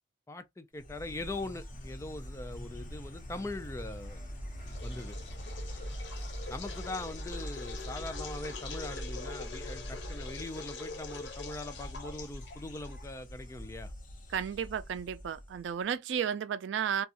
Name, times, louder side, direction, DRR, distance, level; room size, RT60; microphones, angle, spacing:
voice 1, 0.3-4.2 4.8-5.2 6.5-13.9, left 2 dB, 15° left, 0.4 m, -41 dB
Insect, 0.8-15.8, equal, 50° left, 0.9 m, -43 dB
sound 1, 4.7-13.2, left 4 dB, 90° left, 0.6 m, -45 dB
voice 2, 14.3-17.1, right 8 dB, 85° right, 0.3 m, -33 dB
2.5 x 2.3 x 2.7 m
head